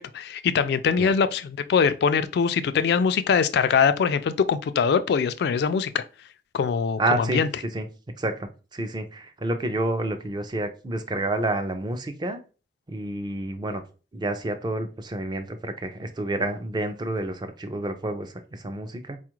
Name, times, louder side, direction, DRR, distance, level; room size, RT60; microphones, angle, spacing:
voice 1, 0.0-6.0 6.5-7.5, left 6 dB, 65° left, 0.3 m, -23 dB
voice 2, 7.0-7.4 7.7-7.8 8.2-12.4 12.9-13.8 14.1-19.2, right 1 dB, 25° right, 0.4 m, -29 dB
4.2 x 2.4 x 3.0 m
head